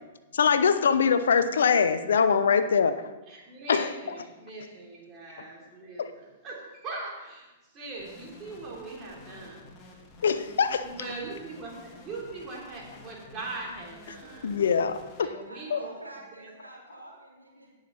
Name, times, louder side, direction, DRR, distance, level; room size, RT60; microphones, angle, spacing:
voice 1, 0.3-2.9 3.7-3.9 6.0-6.1 10.2-10.9 14.4-15.3 15.7-15.8, left 6 dB, 65° left, 11 dB, 0.7 m, -23 dB
voice 2, 3.3-9.6 10.8-14.6 15.2-16.0 16.4-16.5, right 3 dB, 25° right, -3 dB, 3.4 m, -41 dB
sound 1, 8.0-15.2, left 2 dB, 25° left, 2.1 m, -51 dB
voice 3, 15.5-17.7, right 1 dB, 85° right, -4 dB, 3.3 m, -47 dB
17.5 x 6.6 x 4.2 m, 1.1 s
figure-of-eight pair, 105°, 0 cm